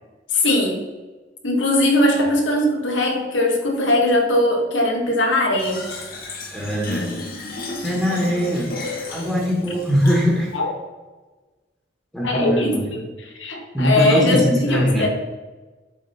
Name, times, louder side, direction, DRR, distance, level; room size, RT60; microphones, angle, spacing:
voice 1, 0.3-0.8 1.4-5.8 10.5-10.7 12.2-13.1 13.4-15.1, left 1 dB, 80° left, 1 dB, 1.7 m, -20 dB
Fill (with liquid), 5.6-10.6, left 2 dB, 55° left, 1.4 m, -33 dB
voice 2, 6.5-7.2 7.8-8.7 9.1-10.5 12.1-12.9 13.7-15.1, equal, 5° left, -4 dB, 1.4 m, -21 dB
8.0 x 3.7 x 5.6 m, 1.3 s
head